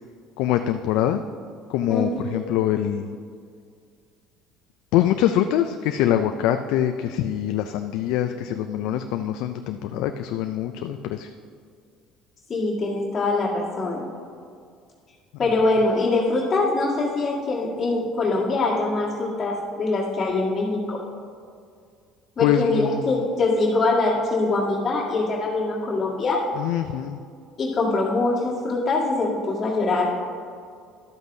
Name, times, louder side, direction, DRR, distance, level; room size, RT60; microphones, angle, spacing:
voice 1, 0.4-1.2 1.7-3.2 4.9-11.3 22.4-23.2 26.6-27.2, left 11 dB, 75° left, 7 dB, 0.3 m, -24 dB
voice 2, 12.5-14.1 15.4-21.0 22.4-26.4 27.6-30.1, left 2 dB, 30° left, -9 dB, 1.8 m, -23 dB
12.0 x 7.9 x 2.7 m, 2.2 s
supercardioid pair, 100°, 0 cm